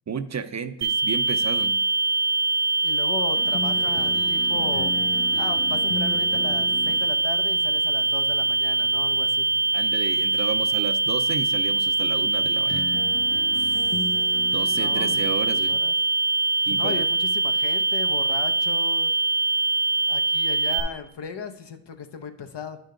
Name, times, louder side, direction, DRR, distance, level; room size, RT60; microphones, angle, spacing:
voice 1, 0.1-1.8 9.7-12.9 14.5-15.8 16.7-17.1, right 6 dB, 40° right, 11 dB, 0.5 m, -32 dB
sound 1, 0.8-20.8, right 3 dB, 65° right, 1.1 m, -23 dB
voice 2, 2.8-4.9 5.4-9.5 13.5-14.0 14.8-15.9 16.8-19.1 20.1-22.8, left 5 dB, 70° left, 8 dB, 0.9 m, -36 dB
sound 2, 3.4-15.2, left 5 dB, 30° left, 0.6 m, -38 dB
9.5 x 5.1 x 3.8 m, 0.77 s
cardioid pair, 65°, 43 cm